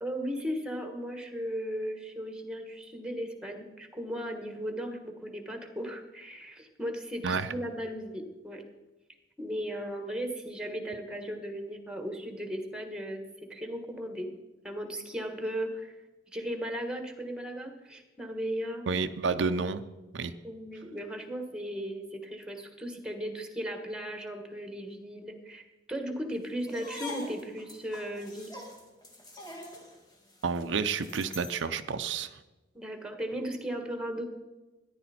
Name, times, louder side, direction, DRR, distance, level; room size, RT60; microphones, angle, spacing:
voice 1, 0.0-8.6 9.4-13.2 13.5-14.3 14.6-16.0 16.3-18.8 20.4-28.6 32.7-34.2, equal, 5° right, 5 dB, 1.4 m, -36 dB
voice 2, 18.9-19.8 20.1-20.3 30.4-32.3, right 5 dB, 75° right, 9 dB, 0.6 m, -30 dB
sound 1, 26.6-31.6, left 2 dB, 20° left, 2.1 m, -44 dB
14.0 x 10.5 x 4.3 m, 1.1 s
head